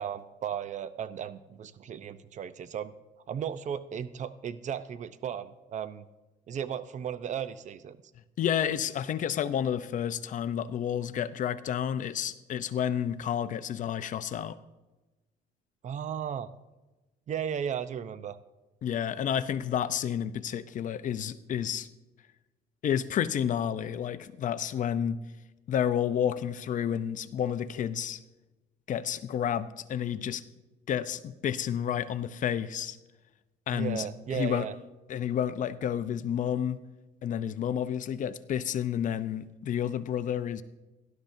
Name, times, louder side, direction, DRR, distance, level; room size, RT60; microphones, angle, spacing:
voice 1, 0.0-2.9 3.3-6.1 6.5-8.0 15.8-16.5 17.3-18.4 33.7-34.8, right 8 dB, 45° right, 13 dB, 0.7 m, -35 dB
voice 2, 8.4-14.6 18.8-21.9 22.8-25.2 25.7-28.2 28.9-30.4 30.9-33.0 33.7-34.7 35.1-36.8 37.2-40.6, left 9 dB, 50° left, 13 dB, 0.6 m, -30 dB
18.0 x 11.5 x 2.7 m, 1.1 s
cardioid pair, 110°, 17 cm